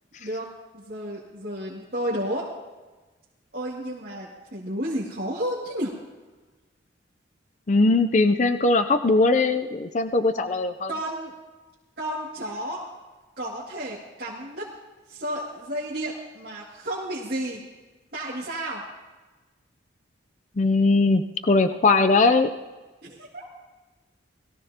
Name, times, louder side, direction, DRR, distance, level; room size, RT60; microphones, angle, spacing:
voice 1, 0.7-2.5 3.5-5.9 10.9-11.3 12.0-12.8 13.4-14.7 15.1-17.6 18.1-18.8 23.0-23.5, right 1 dB, 55° right, -6 dB, 2.3 m, -32 dB
voice 2, 7.7-10.9 20.6-22.5, left 3 dB, 40° left, 9 dB, 0.5 m, -20 dB
21.0 x 15.0 x 2.8 m, 1.2 s
head